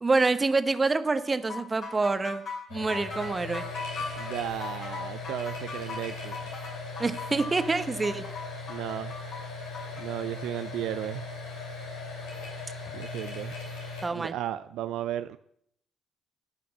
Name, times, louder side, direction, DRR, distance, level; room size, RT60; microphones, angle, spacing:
voice 1, 0.0-2.4 2.7-3.6 7.0-8.2 14.0-14.4, right 3 dB, 30° right, 11 dB, 1.0 m, -26 dB
sound 1, 1.5-10.0, left 4 dB, 60° left, 4.9 m, -39 dB
sound 2, 2.7-14.0, left 3 dB, 80° left, 3.0 m, -38 dB
voice 2, 4.2-6.4 8.7-9.1 10.0-11.2 12.9-13.5 14.1-15.4, right 12 dB, 70° right, 11 dB, 0.4 m, -34 dB
11.5 x 5.8 x 7.7 m, 0.69 s
hypercardioid pair, 50°, 0 cm